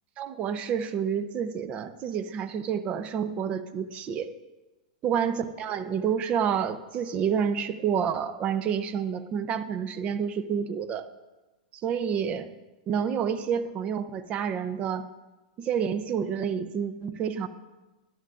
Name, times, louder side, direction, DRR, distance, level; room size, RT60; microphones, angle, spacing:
voice 1, 0.2-4.3 5.0-11.1 11.7-12.5 12.9-15.0 15.6-17.5, right 7 dB, 30° right, 12 dB, 0.6 m, -29 dB
12.5 x 11.5 x 2.5 m, 1.1 s
hypercardioid pair, 135°, 4 cm